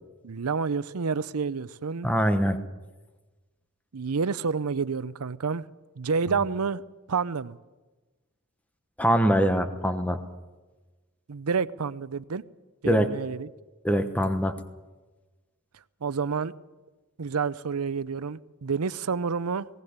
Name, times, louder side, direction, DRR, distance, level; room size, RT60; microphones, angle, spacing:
voice 1, 0.2-2.1 3.9-5.6 6.0-6.8 7.1-7.6 11.3-12.4 12.8-13.5 16.0-16.5 17.2-19.7, right 5 dB, 85° right, 16 dB, 0.6 m, -29 dB
voice 2, 2.0-2.6 9.0-10.2 12.8-13.1 13.8-14.6, equal, 5° left, 8 dB, 1.0 m, -23 dB
19.0 x 17.5 x 8.1 m, 1.2 s
head